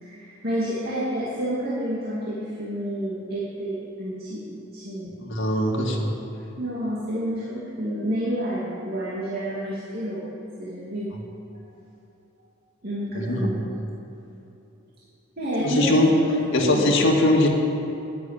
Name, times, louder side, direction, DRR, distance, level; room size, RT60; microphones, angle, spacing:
voice 1, 0.0-5.2 6.6-10.3 10.6-11.1 12.8-13.6 15.4-17.0, equal, 50° right, -8 dB, 2.5 m, -29 dB
voice 2, 5.2-6.1 13.1-13.5 15.6-16.1 16.5-17.5, left 1 dB, 60° left, -1 dB, 2.1 m, -21 dB
10.5 x 10.5 x 8.8 m, 2.9 s
head